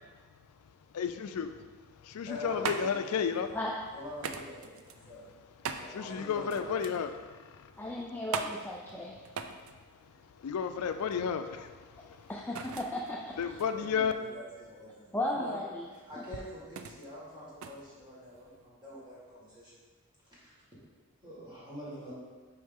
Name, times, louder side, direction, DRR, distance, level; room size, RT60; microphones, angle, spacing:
voice 1, 0.9-1.5 2.0-3.5 5.9-7.7 10.4-12.3 13.4-14.1, left 7 dB, 85° left, 9 dB, 0.4 m, -32 dB
sound 1, 2.1-18.7, right 6 dB, 65° right, 0.4 m, -43 dB
voice 2, 2.2-3.5 3.9-5.3 5.7-6.9 13.7-15.5 15.9-19.8 20.2-20.5 21.2-22.1, equal, 20° right, -8 dB, 2.0 m, -46 dB
voice 3, 7.8-9.1 12.3-13.6 15.1-15.8, left 1 dB, 10° left, -3 dB, 0.3 m, -35 dB
6.3 x 4.8 x 3.6 m, 1.4 s
head